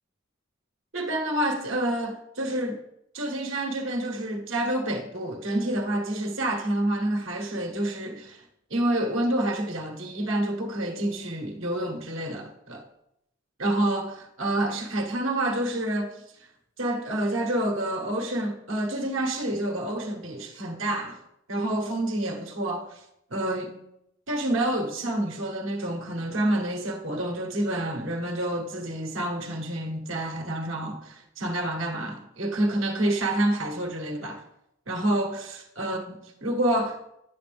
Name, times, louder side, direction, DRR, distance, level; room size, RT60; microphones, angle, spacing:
voice 1, 0.9-2.8 3.1-8.4 8.7-12.8 13.6-16.2 16.8-21.2 21.5-23.0 23.3-23.7 24.3-34.4 34.9-37.0, right 1 dB, 75° right, 1.2 m, -28 dB
9.3 x 6.9 x 3.5 m
head